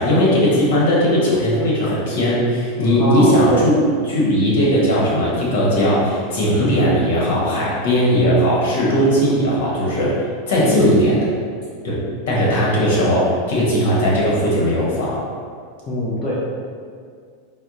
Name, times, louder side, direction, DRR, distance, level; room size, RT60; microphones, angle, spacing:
voice 1, 0.0-3.7 4.1-11.2 11.8-15.2, equal, 75° left, -5 dB, 1.1 m, -18 dB
voice 2, 3.0-3.7 10.6-10.9 15.9-16.3, left 1 dB, 35° left, -8 dB, 0.7 m, -22 dB
4.3 x 2.1 x 2.6 m, 2.1 s
supercardioid pair, 125°, 0 cm